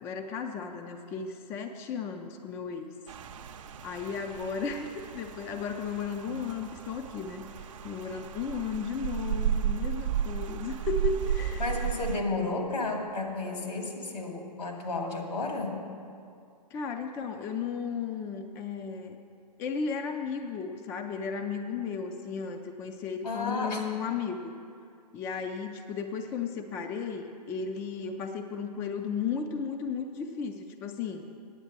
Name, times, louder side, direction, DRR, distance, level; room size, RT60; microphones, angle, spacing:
voice 1, 0.0-2.9 3.8-11.8 16.7-19.2 19.6-24.5 25.1-31.3, left 6 dB, 10° left, 5 dB, 0.3 m, -35 dB
Rain, 3.1-12.2, right 9 dB, 50° right, 0.6 m, -34 dB
voice 2, 11.6-15.8 23.2-23.9, left 3 dB, 75° left, 1 dB, 2.1 m, -32 dB
9.4 x 7.9 x 7.2 m, 2.4 s
figure-of-eight pair, 125°, 21 cm